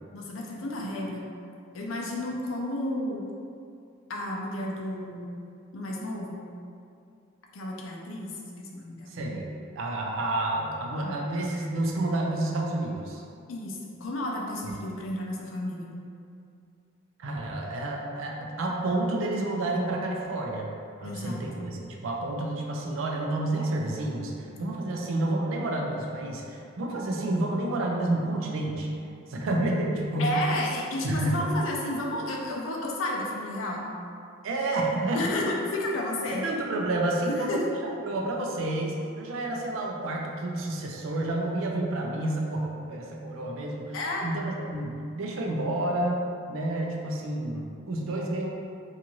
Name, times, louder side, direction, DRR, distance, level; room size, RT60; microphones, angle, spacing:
voice 1, 0.1-1.2 1.7-3.2 4.1-5.3 5.7-6.4 7.5-9.2 11.0-11.2 13.5-15.9 21.0-21.4 30.2-33.9 35.1-36.5 37.3-37.7 43.9-44.2, left 1 dB, 80° left, -1 dB, 0.5 m, -32 dB
voice 2, 9.1-9.5 9.8-13.2 17.2-20.7 21.0-28.9 29.3-30.5 31.0-31.5 34.4-35.3 36.3-44.0 44.2-48.5, right 2 dB, 80° right, -1 dB, 0.4 m, -29 dB
2.6 x 2.4 x 2.9 m, 2.4 s
head